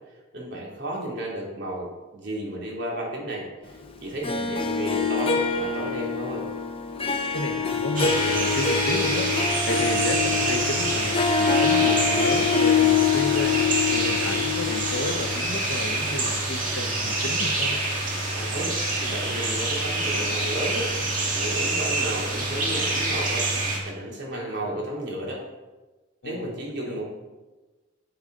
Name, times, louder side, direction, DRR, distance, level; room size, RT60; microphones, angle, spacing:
voice 1, 0.3-3.7 4.0-6.5 18.4-23.5 23.8-25.4 26.2-27.1, right 1 dB, 60° right, -3 dB, 2.8 m, -33 dB
Harp, 4.2-15.3, left 6 dB, 30° left, 0.8 m, -25 dB
voice 2, 7.3-9.3 9.7-13.6 13.9-17.8 24.3-24.8 26.2-26.5 26.8-27.0, left 1 dB, 65° left, 6 dB, 1.0 m, -32 dB
sound 1, 8.0-23.8, right 2 dB, 40° right, 2.1 m, -26 dB
9.8 x 9.0 x 3.9 m, 1.2 s
head